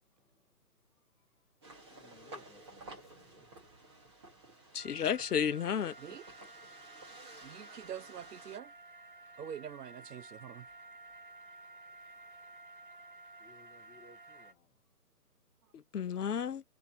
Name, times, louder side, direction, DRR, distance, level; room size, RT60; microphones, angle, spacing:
sound 1, 1.6-8.6, right 2 dB, 15° right, 1.0 m, -53 dB
voice 1, 1.8-3.5 13.4-14.7, left 3 dB, 15° left, 0.9 m, -60 dB
voice 2, 4.7-5.9 15.7-16.6, left 8 dB, 75° left, 0.7 m, -32 dB
sound 2, 4.8-14.5, right 2 dB, 35° right, 0.7 m, -53 dB
voice 3, 7.4-8.7 9.4-10.7, right 9 dB, 90° right, 0.6 m, -45 dB
4.1 x 2.8 x 4.7 m
figure-of-eight pair, 155°, 46 cm